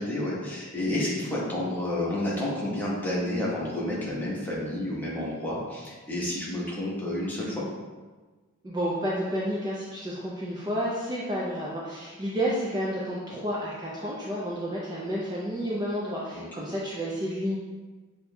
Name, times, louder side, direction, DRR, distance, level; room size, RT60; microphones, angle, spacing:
voice 1, 0.0-7.7 16.3-16.4, left 1 dB, 10° left, -7 dB, 0.9 m, -30 dB
voice 2, 8.6-17.6, equal, 20° right, -6 dB, 0.4 m, -30 dB
6.6 x 2.6 x 2.2 m, 1.3 s
head